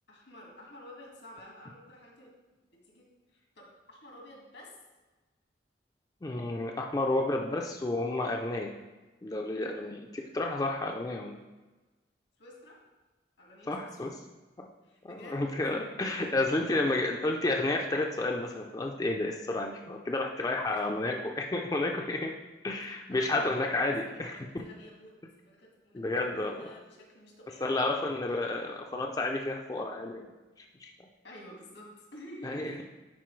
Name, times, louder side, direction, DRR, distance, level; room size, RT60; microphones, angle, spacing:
voice 1, 0.1-2.3 2.7-4.8 12.4-12.8 13.4-13.9 14.8-15.5 16.3-16.6 20.8-20.9 23.1-23.4 23.9-25.1 25.4-27.7 31.2-32.8, left 1 dB, 85° left, -1 dB, 1.8 m, -50 dB
voice 2, 6.2-8.7 9.2-11.3 13.7-14.1 14.6-14.7 15.0-22.3 22.6-24.4 25.9-26.7 27.6-30.3 30.6-30.9 32.4-32.7, left 2 dB, 20° left, 1 dB, 0.4 m, -31 dB
10.5 x 4.2 x 3.1 m, 1.2 s
head